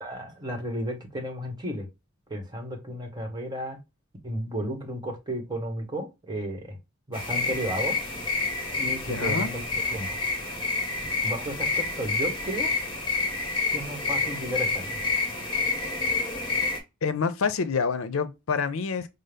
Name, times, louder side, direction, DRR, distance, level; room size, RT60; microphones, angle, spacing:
voice 1, 0.0-1.9 2.3-3.8 4.2-6.8 7.1-8.0 8.7-9.6 9.9-10.2 11.2-12.7 13.7-15.1, equal, 20° right, 1.1 m, -33 dB
sound 1, 7.1-16.8, left 3 dB, 25° left, 1.4 m, -28 dB
voice 2, 9.1-9.5 17.0-19.1, left 5 dB, 75° left, 0.5 m, -27 dB
5.4 x 2.0 x 3.3 m
head